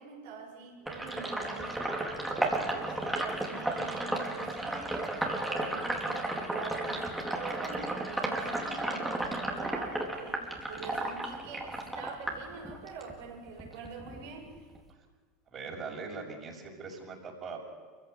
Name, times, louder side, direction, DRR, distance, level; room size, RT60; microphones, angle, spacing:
voice 1, 0.0-14.7, right 5 dB, 65° right, 1 dB, 6.8 m, -45 dB
Sink (filling or washing), 0.9-13.1 13.5-14.9, right 2 dB, 5° right, 4.5 m, -33 dB
voice 2, 15.5-17.6, right 4 dB, 35° right, 0 dB, 6.9 m, -41 dB
28.0 x 15.5 x 9.5 m, 1.5 s
figure-of-eight pair, 75°, 0 cm